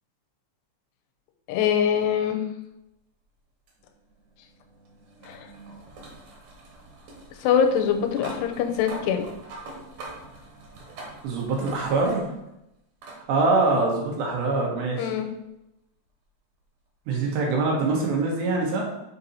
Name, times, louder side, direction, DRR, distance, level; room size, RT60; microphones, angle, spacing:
voice 1, 1.5-2.4 5.2-5.5 7.4-9.3 15.0-15.3, left 8 dB, 85° left, 5 dB, 2.8 m, -23 dB
sound 1, 3.7-12.5 13.0-13.2 14.5-14.6 17.5-17.6, right 2 dB, 65° right, 2.5 m, -44 dB
voice 2, 11.2-12.3 13.3-15.1 17.1-18.8, right 3 dB, 90° right, -1 dB, 3.6 m, -24 dB
7.1 x 4.1 x 4.1 m, 0.89 s
omnidirectional pair, 4.8 m